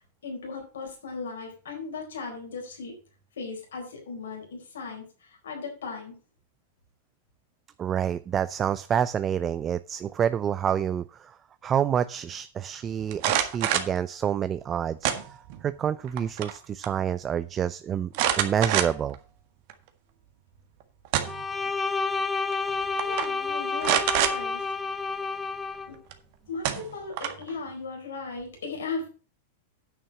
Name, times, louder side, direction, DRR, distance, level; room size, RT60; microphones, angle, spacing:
voice 1, 0.2-2.9 3.4-6.1 22.9-24.6 25.9-26.0 26.5-29.1, left 4 dB, 80° left, 1 dB, 4.4 m, -37 dB
voice 2, 7.8-11.4 11.6-15.1 15.6-18.1 18.3-19.2, right 9 dB, 30° right, 14 dB, 0.5 m, -28 dB
sound 1, 13.1-14.0 15.0-15.6 16.0-16.6 16.8-16.9 18.1-19.2 19.7-19.8 20.8-21.5 22.5-22.7 23.0-23.3 23.8-24.4 26.1-26.2 26.6-27.5, right 11 dB, 55° right, 1.7 m, -26 dB
Bowed string instrument, 21.2-25.9, left 4 dB, 15° left, 0.7 m, -30 dB
9.4 x 6.9 x 5.9 m, 0.36 s
hypercardioid pair, 110°, 0 cm